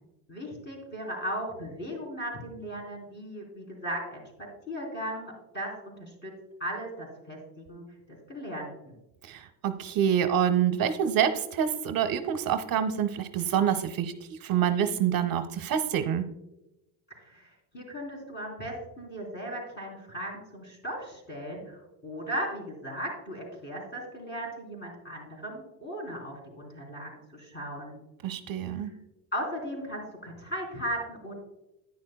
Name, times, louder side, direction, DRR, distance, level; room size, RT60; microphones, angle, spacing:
voice 1, 0.3-4.3 4.7-6.3 6.6-8.9 17.2-28.0 28.8-28.9 29.3-31.3, equal, 25° left, -1 dB, 3.5 m, -37 dB
voice 2, 9.2-16.2 28.2-28.9, right 9 dB, 55° right, 9 dB, 0.6 m, -27 dB
10.5 x 9.6 x 2.2 m, 0.94 s
cardioid pair, 145°, 42 cm